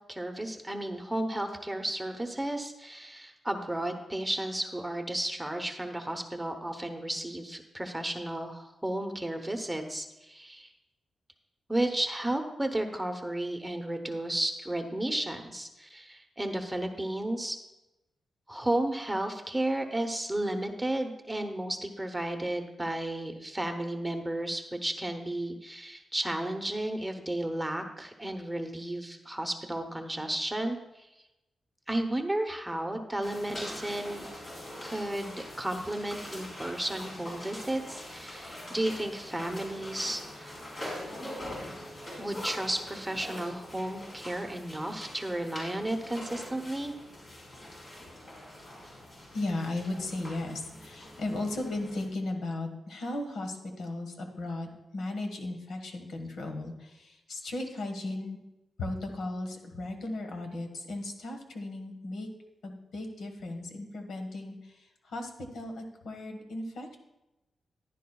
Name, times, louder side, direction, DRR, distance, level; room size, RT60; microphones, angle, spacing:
voice 1, 0.1-10.7 11.7-17.6 18.5-31.1 31.9-34.3 34.8-40.6 42.2-46.9, right 1 dB, 10° right, 5 dB, 0.9 m, -33 dB
sound 1, 33.2-52.1, left 1 dB, 40° left, 4.4 m, -43 dB
voice 2, 49.3-58.4 58.8-62.3 62.6-67.0, left 2 dB, 80° left, 4 dB, 1.5 m, -36 dB
15.0 x 10.5 x 2.3 m, 0.97 s
wide cardioid pair, 130°, 0 cm